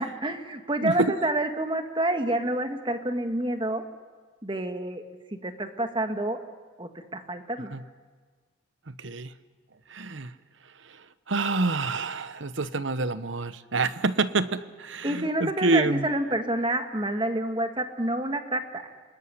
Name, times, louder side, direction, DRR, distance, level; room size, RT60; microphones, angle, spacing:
voice 1, 0.0-3.8 4.4-5.1 5.4-6.4 6.8-7.7 15.0-18.8, right 1 dB, 25° right, 6 dB, 1.7 m, -28 dB
voice 2, 0.8-1.1 7.7-7.8 8.9-9.3 9.9-10.3 10.8-16.1, right 3 dB, 70° right, 13 dB, 1.0 m, -27 dB
27.0 x 21.0 x 9.9 m, 1.4 s
head